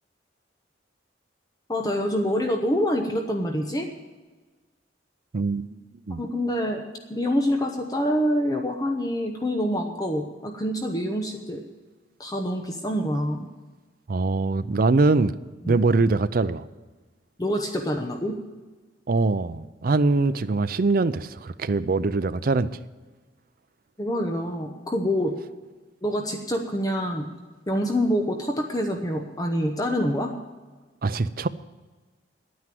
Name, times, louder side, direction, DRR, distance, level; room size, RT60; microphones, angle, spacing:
voice 1, 1.7-3.9 6.2-6.8 7.1-11.6 12.2-13.5 15.6-15.8 17.4-18.4 24.0-25.3 26.0-27.3 27.7-30.3, equal, 20° left, 0.9 m, -26 dB
voice 2, 5.3-5.8 6.1-6.2 14.1-15.3 15.7-16.6 19.1-22.7 31.0-31.5, right 3 dB, 55° right, 0.5 m, -23 dB
10.5 x 9.4 x 7.6 m
head